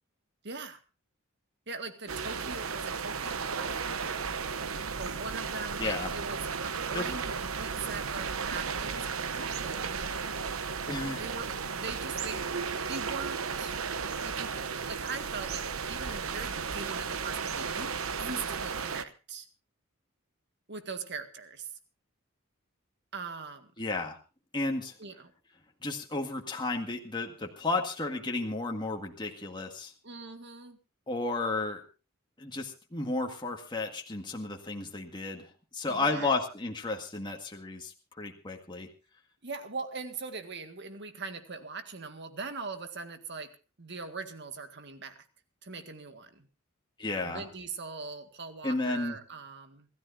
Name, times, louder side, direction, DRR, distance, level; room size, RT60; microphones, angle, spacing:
voice 1, 0.4-0.8 1.7-3.8 4.0-4.4 5.0-9.9 11.2-12.5 12.9-13.8 14.2-14.5 14.9-19.5 20.7-21.7 23.1-23.7 25.0-25.3 30.0-30.8 35.9-36.3 39.4-43.5 43.8-45.2 45.6-46.5 47.2-49.9, right 4 dB, 55° right, 7 dB, 1.9 m, -41 dB
sound 1, 2.1-19.0, right 5 dB, 85° right, 1.0 m, -34 dB
voice 2, 5.8-6.1 6.9-7.1 10.9-11.3 23.8-24.2 24.5-25.0 25.8-29.9 31.1-31.8 32.4-38.9 47.0-47.4 48.6-49.2, left 3 dB, 20° left, 2 dB, 1.8 m, -33 dB
27.0 x 14.0 x 2.7 m, 0.32 s
head